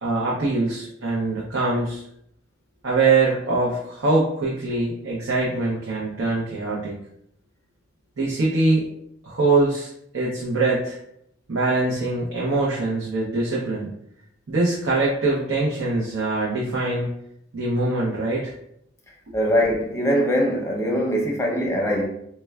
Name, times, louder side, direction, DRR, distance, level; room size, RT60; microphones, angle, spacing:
voice 1, 0.0-2.0 2.8-7.0 8.2-8.9 9.2-9.9 10.1-11.0 11.5-13.9 14.5-17.1 17.5-18.5, right 3 dB, 90° right, 0.6 m, -23 dB
voice 2, 19.3-22.1, equal, 15° left, 0.6 m, -22 dB
4.3 x 2.1 x 2.2 m
head